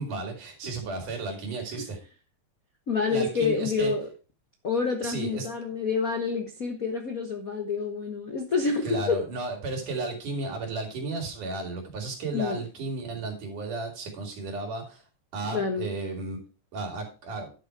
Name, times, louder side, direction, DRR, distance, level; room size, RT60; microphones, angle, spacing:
voice 1, 0.0-2.0 3.1-3.9 5.0-5.5 8.8-15.0 15.3-16.4 16.7-17.5, right 3 dB, 85° right, 2 dB, 4.5 m, -33 dB
voice 2, 2.9-4.1 4.6-9.2 12.3-12.6 15.5-15.9, left 5 dB, 60° left, 4 dB, 0.9 m, -28 dB
11.5 x 6.6 x 4.7 m, 0.33 s
omnidirectional pair, 3.5 m